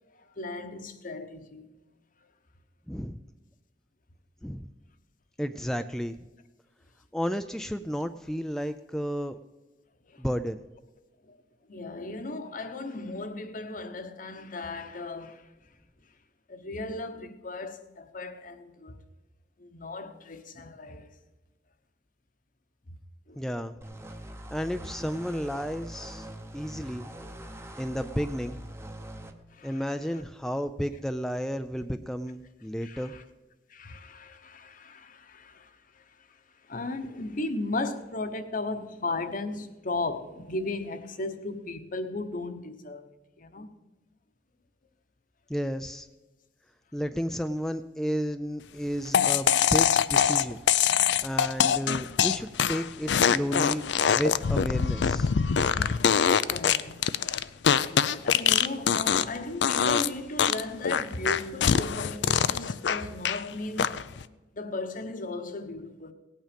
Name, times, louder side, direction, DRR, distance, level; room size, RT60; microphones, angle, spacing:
voice 1, 0.4-1.7 10.1-10.2 11.3-11.4 11.7-15.4 16.5-19.0 19.6-21.1 23.3-23.4 29.5-29.8 32.8-33.2 33.7-36.0 36.7-43.7 55.6-56.1 56.5-57.1 58.2-64.1 64.5-66.1, left 2 dB, 50° left, 1.0 m, -36 dB
voice 2, 2.9-3.2 4.4-4.7 5.4-6.2 7.1-9.4 10.2-10.6 23.4-23.8 24.5-26.3 26.5-27.1 27.8-28.6 29.6-33.1 45.5-46.1 46.9-50.6 51.2-53.8 54.1-55.3, equal, 5° left, 0.4 m, -32 dB
sound 1, 23.8-29.3, right 1 dB, 15° right, 0.9 m, -43 dB
sound 2, 49.1-59.4 59.6-60.1 60.4-63.4 63.8-64.2, left 7 dB, 75° left, 0.5 m, -24 dB
17.5 x 8.9 x 5.2 m
head